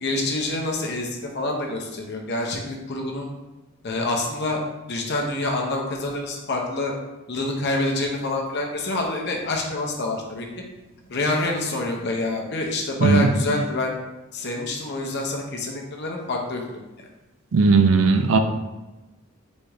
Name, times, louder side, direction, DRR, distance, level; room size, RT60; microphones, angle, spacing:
voice 1, 0.0-3.3 3.8-4.6 4.9-6.9 7.3-10.5 11.1-13.9 14.3-16.8, left 2 dB, 50° left, 0 dB, 0.7 m, -27 dB
voice 2, 17.5-18.4, right 4 dB, 65° right, 6 dB, 0.4 m, -17 dB
4.1 x 3.4 x 3.5 m, 1.1 s
head